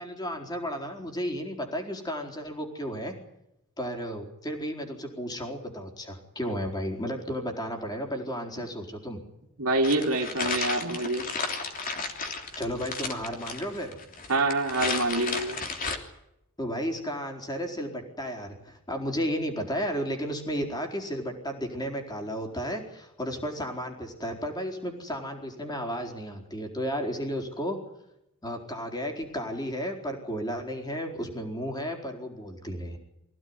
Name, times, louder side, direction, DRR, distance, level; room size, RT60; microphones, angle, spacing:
voice 1, 0.0-3.1 3.8-9.2 12.6-14.0 16.6-27.8 28.4-33.0, equal, 20° left, 2 dB, 4.4 m, -33 dB
voice 2, 9.6-11.2 14.3-15.6, right 2 dB, 75° right, 1 dB, 2.8 m, -26 dB
sound 1, 9.8-16.0, left 4 dB, 40° left, 3.2 m, -33 dB
25.0 x 16.5 x 9.7 m, 0.86 s
head